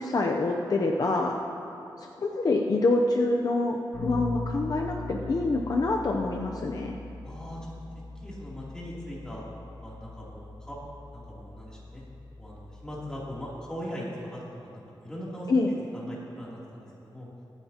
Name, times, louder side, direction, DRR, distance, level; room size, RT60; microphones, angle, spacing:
voice 1, 0.0-1.4 2.0-7.0 15.5-15.7, left 2 dB, 50° left, 1 dB, 0.7 m, -26 dB
Bass guitar, 3.9-13.7, left 2 dB, 80° left, 2.9 m, -40 dB
voice 2, 7.2-7.7 8.2-9.4 9.8-10.8 11.1-12.0 12.4-15.5 15.9-17.3, equal, 10° left, -7 dB, 3.0 m, -40 dB
23.0 x 9.1 x 2.9 m, 2.7 s
wide cardioid pair, 125°, 8 cm